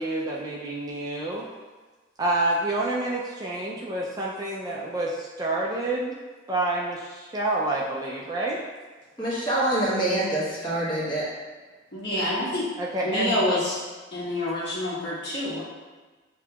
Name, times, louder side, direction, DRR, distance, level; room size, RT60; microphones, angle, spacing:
voice 1, 0.0-1.5 2.2-6.1 6.5-8.6 12.8-13.4, right 2 dB, 20° right, -4 dB, 0.3 m, -28 dB
voice 2, 9.2-11.2, right 1 dB, 20° left, -8 dB, 1.2 m, -25 dB
voice 3, 11.9-12.7 13.0-13.8 14.1-15.6, left 1 dB, 55° left, -8 dB, 1.4 m, -27 dB
7.1 x 2.8 x 2.3 m, 1.3 s
head